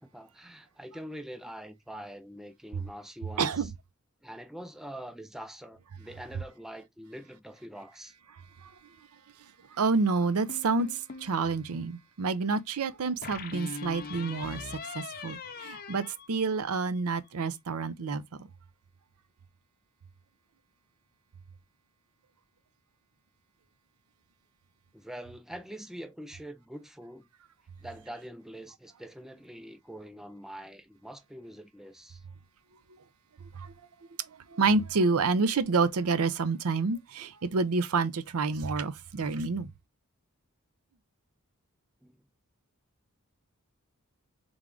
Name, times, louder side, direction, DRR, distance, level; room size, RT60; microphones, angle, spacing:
voice 1, 0.0-3.7 4.2-8.1 24.9-27.3 27.8-32.2 42.0-42.2, equal, ahead, 0.5 m, -44 dB
voice 2, 3.4-3.7 8.6-8.7 9.7-18.5 33.5-33.7 34.2-39.7, right 4 dB, 75° right, 0.5 m, -28 dB
sound 1, 10.5-11.4 13.2-17.0, left 5 dB, 45° left, 0.6 m, -42 dB
3.5 x 3.5 x 3.7 m
head